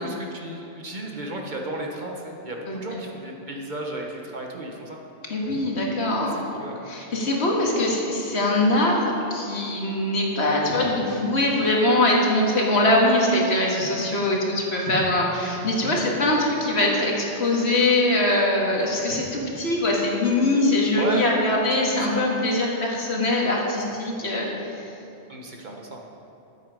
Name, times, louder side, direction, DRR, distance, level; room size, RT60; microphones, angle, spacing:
voice 1, 0.0-5.0 6.5-6.8 20.9-21.2 22.1-22.2 25.3-26.1, right 1 dB, 45° right, 0 dB, 1.3 m, -33 dB
voice 2, 2.7-3.0 5.3-6.4 6.9-24.8, left 1 dB, 65° left, -2 dB, 2.0 m, -22 dB
14.0 x 8.3 x 4.9 m, 2.9 s
omnidirectional pair, 1.2 m